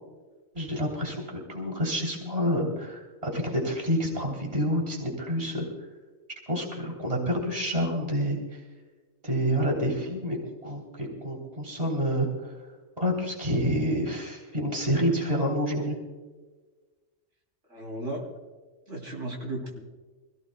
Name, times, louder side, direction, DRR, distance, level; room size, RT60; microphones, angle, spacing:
voice 1, 0.5-5.6 6.5-8.4 9.2-10.4 10.6-12.5 13.0-16.0, equal, 25° right, 0 dB, 3.3 m, -28 dB
voice 2, 17.7-18.2 18.9-19.8, right 1 dB, 65° right, 0 dB, 3.5 m, -35 dB
26.5 x 16.5 x 2.2 m, 1.3 s
omnidirectional pair, 1.4 m